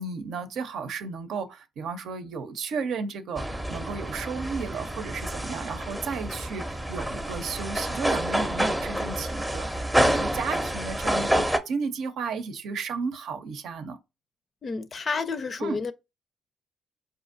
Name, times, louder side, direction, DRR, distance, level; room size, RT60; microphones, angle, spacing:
voice 1, 0.0-14.0 15.6-15.8, right 5 dB, 75° right, 0.6 m, -33 dB
sound 1, 3.4-11.6, right 1 dB, 5° right, 0.6 m, -28 dB
voice 2, 14.6-15.9, left 4 dB, 45° left, 0.5 m, -30 dB
4.8 x 2.6 x 2.5 m
cardioid pair, 90°, 0 cm